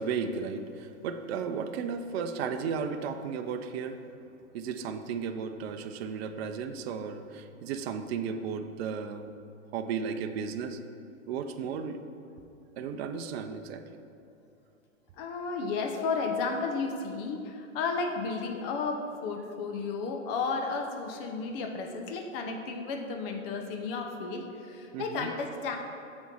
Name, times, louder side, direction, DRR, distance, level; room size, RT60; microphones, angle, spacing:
voice 1, 0.0-4.0 4.5-9.3 9.7-10.8 11.3-12.0 12.8-13.8 24.9-25.3, right 6 dB, 50° right, 7 dB, 0.6 m, -34 dB
voice 2, 15.2-25.8, left 4 dB, 45° left, 4 dB, 1.0 m, -33 dB
7.6 x 4.3 x 4.7 m, 2.7 s
hypercardioid pair, 125°, 41 cm